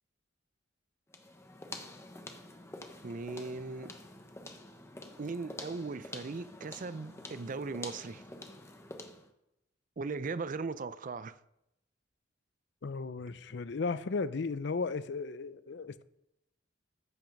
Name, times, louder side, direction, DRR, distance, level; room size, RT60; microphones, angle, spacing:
sound 1, 1.1-9.3, left 2 dB, 15° left, 0.9 m, -48 dB
voice 1, 3.0-3.9 5.2-8.2 10.0-11.4, right 4 dB, 40° right, 0.4 m, -38 dB
voice 2, 12.8-16.0, left 4 dB, 60° left, 0.5 m, -35 dB
14.0 x 5.9 x 5.2 m
head